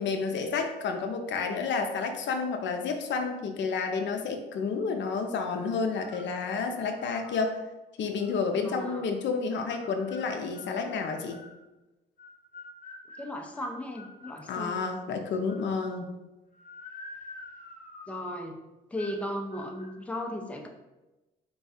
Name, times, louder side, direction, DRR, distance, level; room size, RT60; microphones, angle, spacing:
voice 1, 0.0-7.6 8.0-11.4 14.5-16.1, left 5 dB, 65° left, 5 dB, 0.6 m, -30 dB
sound 1, 5.9-6.3 6.9-7.5 8.1-9.1 9.7-11.6 12.2-15.0 15.5-16.1 16.5-18.5 19.0-19.2 19.5-19.9, left 2 dB, 40° left, 0.9 m, -48 dB
voice 2, 8.6-9.0 13.2-14.8 18.1-18.6 18.9-20.7, left 1 dB, 5° left, 2 dB, 0.6 m, -36 dB
4.6 x 2.3 x 4.1 m, 1.0 s
cardioid pair, 90°, 20 cm